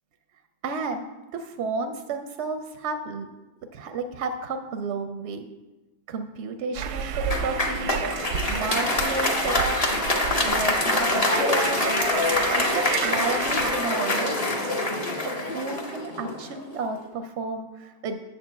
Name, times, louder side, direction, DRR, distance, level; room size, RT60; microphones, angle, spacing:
voice 1, 0.6-1.1 1.3-3.3 3.7-5.5 6.1-7.9 8.5-10.0 10.4-11.8 12.5-14.4 15.2-18.2, right 4 dB, 65° right, 7 dB, 0.7 m, -32 dB
sound 1, 6.7-13.8, right 7 dB, 85° right, 1.1 m, -32 dB
Applause, 7.3-16.6, left 2 dB, 30° left, 0.8 m, -25 dB
7.6 x 4.5 x 7.1 m, 1.1 s
omnidirectional pair, 1.6 m